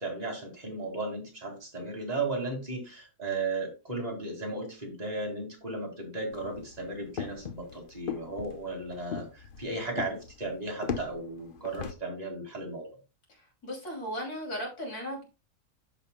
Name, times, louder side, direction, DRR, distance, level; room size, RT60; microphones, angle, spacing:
voice 1, 0.0-12.9, right 2 dB, 25° right, 0 dB, 2.3 m, -35 dB
sound 1, 6.3-11.9, left 6 dB, 50° left, 0.7 m, -39 dB
voice 2, 13.6-15.3, equal, 80° left, -1 dB, 3.4 m, -36 dB
13.0 x 5.1 x 2.2 m, 0.29 s
omnidirectional pair, 1.6 m